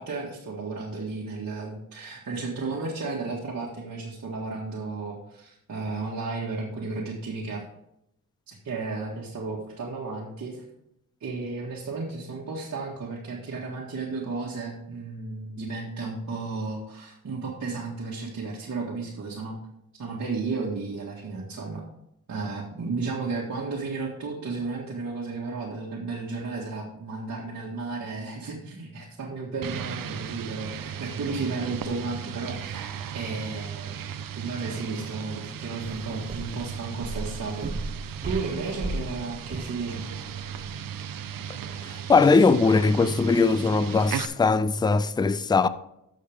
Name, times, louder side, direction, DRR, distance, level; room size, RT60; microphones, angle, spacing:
voice 1, 0.0-7.7 8.5-10.7 11.2-19.5 19.9-21.8 22.3-37.8 38.2-40.1, right 3 dB, 55° right, 1.9 m, -33 dB
sound 1, 29.6-44.2, right 8 dB, 75° right, 0.7 m, -36 dB
sound 2, 35.8-40.8, right 2 dB, 25° right, 1.1 m, -36 dB
voice 2, 42.1-45.7, left 4 dB, 15° left, 0.4 m, -20 dB
13.0 x 6.6 x 3.6 m
cardioid pair, 85°, 34 cm